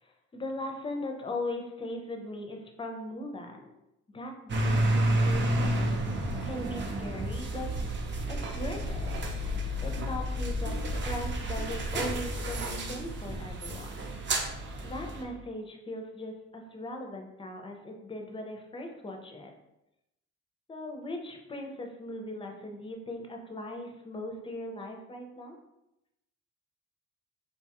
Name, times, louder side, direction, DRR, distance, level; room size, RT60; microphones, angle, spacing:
voice 1, 0.0-3.7 4.1-5.9 6.4-7.7 8.3-9.3 9.8-14.1 14.8-19.5 20.7-25.6, left 1 dB, 15° left, 2 dB, 0.5 m, -39 dB
sound 1, 4.5-15.2, right 1 dB, 40° right, 0.5 m, -30 dB
Piano, 12.6-15.5, right 2 dB, 85° right, 0.6 m, -49 dB
2.7 x 2.3 x 2.8 m, 0.89 s
cardioid pair, 90°, 30 cm